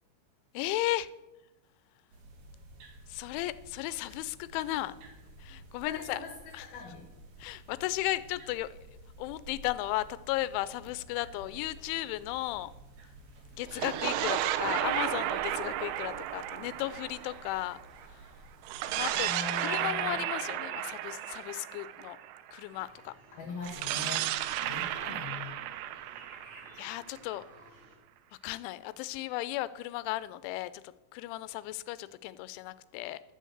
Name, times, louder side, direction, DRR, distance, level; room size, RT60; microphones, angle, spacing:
voice 1, 0.5-1.1 3.1-5.0 5.4-6.2 6.5-6.7 7.4-8.8 9.2-12.7 13.5-17.8 18.1-18.3 18.9-19.3 19.6-22.2 22.5-23.1 26.8-27.4 28.3-33.2, left 16 dB, 90° left, 16 dB, 3.0 m, -35 dB
sound 1, 2.1-19.2, right 1 dB, 60° right, 3.2 m, -52 dB
voice 2, 5.9-6.3 6.6-7.0 19.1-20.2 23.3-24.3 24.6-25.6, left 4 dB, 60° left, 1 dB, 3.2 m, -41 dB
sound 2, 13.6-18.1 18.6-22.6 23.6-27.4, right 13 dB, 85° right, 3.1 m, -34 dB
sound 3, 22.7-28.0, right 1 dB, 40° right, 4.8 m, -56 dB
12.0 x 6.5 x 7.8 m, 1.0 s
omnidirectional pair, 5.4 m